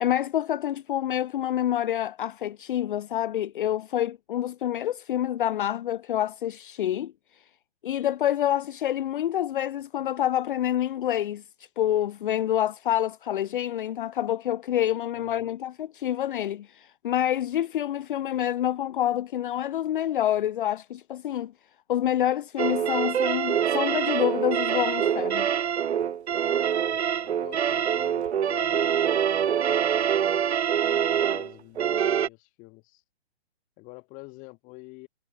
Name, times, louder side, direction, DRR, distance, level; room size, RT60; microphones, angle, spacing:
voice 1, 0.0-7.1 7.8-11.4 11.8-21.5 21.9-25.5, left 11 dB, 50° left, 0.7 m, -27 dB
voice 2, 15.1-15.5 26.8-30.1 31.0-33.0 33.8-35.1, left 26 dB, 25° left, 1.5 m, -48 dB
sound 1, 22.6-32.3, right 8 dB, 75° right, 0.8 m, -25 dB
figure-of-eight pair, 130°, 33 cm